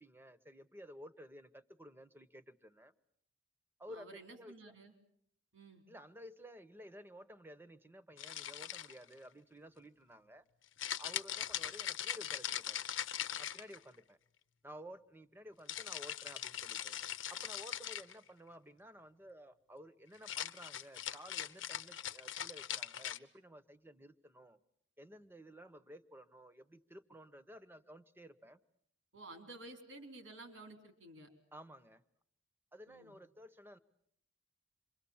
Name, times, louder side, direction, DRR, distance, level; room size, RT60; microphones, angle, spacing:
voice 1, 0.0-2.9 3.8-4.7 5.9-10.4 11.0-12.8 13.4-14.2 14.6-17.0 17.3-24.6 25.0-28.6 31.5-32.0 32.7-33.8, equal, 10° right, 12 dB, 1.0 m, -54 dB
voice 2, 3.9-4.9 5.5-5.8 29.1-31.3 32.9-33.1, right 2 dB, 90° right, 5 dB, 3.7 m, -53 dB
sound 1, 8.2-9.1 10.8-14.0 15.7-18.2 20.2-23.2, left 10 dB, 85° left, 0.9 m, -41 dB
27.0 x 23.5 x 7.2 m, 0.71 s
head